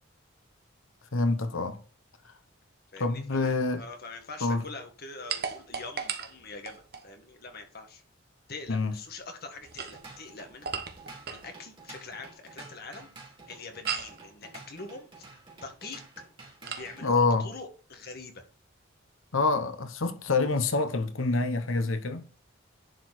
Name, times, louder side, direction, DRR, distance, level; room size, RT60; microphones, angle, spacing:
voice 1, 1.1-1.8 2.2-2.3 3.0-3.8 4.4-4.6 8.7-9.0 17.0-17.5 19.3-22.3, left 3 dB, 85° left, 1.0 m, -26 dB
voice 2, 2.9-8.0 8.5-10.8 11.3-16.0 16.6-18.4, left 3 dB, 50° left, 1.8 m, -44 dB
sound 1, 5.3-7.1 9.6-11.5 13.9-14.2 16.7-16.9, right 7 dB, 50° right, 1.1 m, -36 dB
Drum kit / Drum, 9.7-17.1, right 3 dB, 25° right, 2.9 m, -50 dB
10.5 x 4.6 x 4.2 m
head